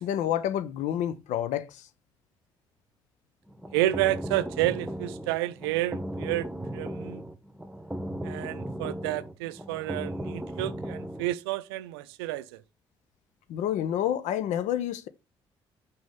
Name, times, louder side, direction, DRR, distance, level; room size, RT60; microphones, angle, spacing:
voice 1, 0.0-1.8 13.5-15.1, left 10 dB, 65° left, 0.7 m, -29 dB
sound 1, 3.5-11.3, right 1 dB, 5° right, 1.1 m, -36 dB
voice 2, 3.7-7.2 8.2-12.6, right 16 dB, 80° right, 0.5 m, -30 dB
6.2 x 4.7 x 5.5 m
figure-of-eight pair, 40°, 13 cm